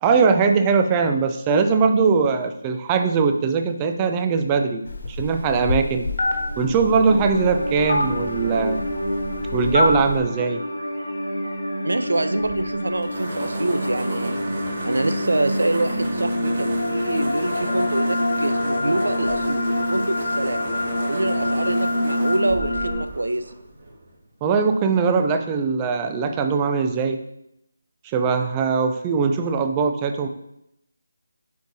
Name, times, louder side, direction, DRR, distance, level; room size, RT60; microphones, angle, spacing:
voice 1, 0.0-6.1 6.6-8.8 9.5-10.6 24.4-27.2 28.0-30.3, right 5 dB, 15° right, 7 dB, 0.4 m, -21 dB
Telephone, 4.9-10.2, left 2 dB, 60° left, 1.3 m, -26 dB
sound 1, 6.1-23.0, left 1 dB, 85° left, 1.4 m, -26 dB
voice 2, 11.8-14.4 14.8-20.6 21.1-23.5, right 2 dB, 85° right, 10 dB, 0.6 m, -25 dB
sound 2, 12.3-24.2, right 2 dB, 45° right, 1.8 m, -34 dB
9.1 x 4.6 x 2.7 m, 0.80 s
figure-of-eight pair, 170°, 0 cm